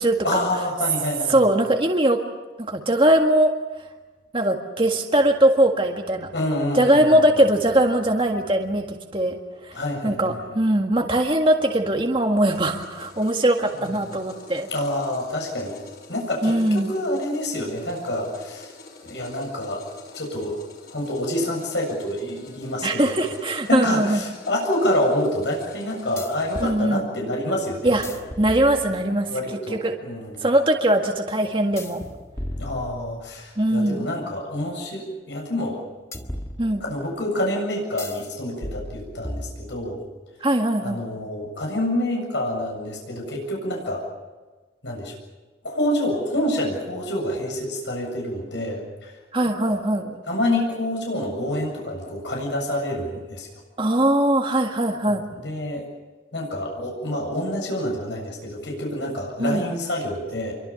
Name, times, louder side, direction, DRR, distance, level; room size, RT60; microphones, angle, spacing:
voice 1, 0.2-1.5 6.3-7.2 9.7-10.4 13.7-13.9 14.7-15.7 16.1-18.7 19.0-19.9 20.1-20.6 20.9-23.2 23.7-28.0 29.3-30.5 32.6-35.8 36.8-40.0 40.8-44.0 44.8-45.1 45.6-49.2 49.6-49.8 50.3-53.5 55.1-55.8 56.3-60.5, left 1 dB, 75° left, -1 dB, 7.5 m, -27 dB
voice 2, 1.3-2.2 2.7-3.5 4.3-6.3 6.7-9.4 9.6-9.7 10.0-14.7 16.4-16.9 22.8-24.2 26.6-27.0 27.8-28.1 28.4-29.3 29.7-29.9 30.4-32.0 33.6-34.1 36.6-36.8 40.4-41.0 49.3-50.1 53.8-55.2 59.4-59.6, right 1 dB, 30° right, 2 dB, 1.8 m, -20 dB
sound 1, 12.4-26.7, left 3 dB, 55° left, 6.2 m, -46 dB
sound 2, 23.7-23.8 26.2-26.8 27.8-29.2 31.8-33.5 36.1-37.1 38.0-38.3 38.6-40.0, left 1 dB, 15° left, 1.7 m, -36 dB
27.0 x 24.0 x 7.1 m, 1.3 s
head